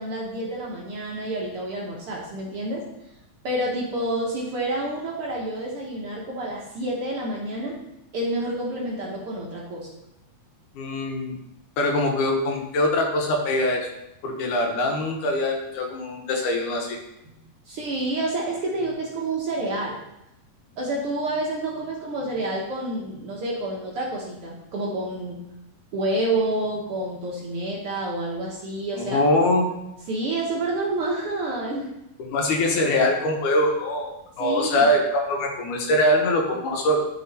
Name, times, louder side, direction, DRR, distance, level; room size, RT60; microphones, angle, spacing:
voice 1, 0.0-2.8 3.4-7.8 8.1-9.9 17.7-20.0 20.8-25.4 25.9-29.2 30.1-31.9 34.4-34.9, right 2 dB, 60° right, -3 dB, 1.7 m, -28 dB
voice 2, 10.7-11.4 11.8-13.9 14.2-17.0 28.9-29.7 32.3-37.0, left 1 dB, 75° left, 1 dB, 2.7 m, -23 dB
11.5 x 4.7 x 4.2 m, 0.88 s
omnidirectional pair, 3.6 m